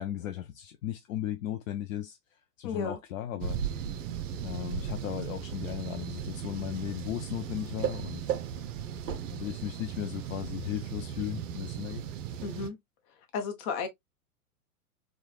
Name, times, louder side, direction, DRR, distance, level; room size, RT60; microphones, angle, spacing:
voice 1, 0.0-2.2 2.6-3.6 4.4-8.2 9.0-12.0, left 12 dB, 60° left, 0.5 m, -36 dB
voice 2, 2.6-3.0 12.4-12.8 13.3-13.9, left 5 dB, 30° left, 0.8 m, -33 dB
sound 1, 3.4-12.7, right 9 dB, 55° right, 0.6 m, -36 dB
3.1 x 2.3 x 2.3 m
hypercardioid pair, 105°, 46 cm